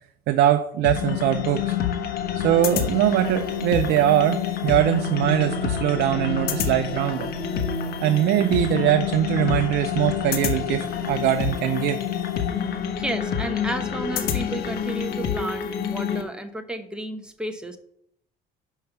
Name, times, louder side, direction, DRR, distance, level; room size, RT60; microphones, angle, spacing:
voice 1, 0.3-1.7 2.4-7.3 8.0-12.0, right 12 dB, 80° right, 7 dB, 0.6 m, -22 dB
sound 1, 0.8-16.2, left 7 dB, 65° left, 1.2 m, -27 dB
voice 2, 13.0-17.8, right 1 dB, 5° right, 6 dB, 1.0 m, -32 dB
6.3 x 5.5 x 6.8 m, 0.71 s
cardioid pair, 110°, 17 cm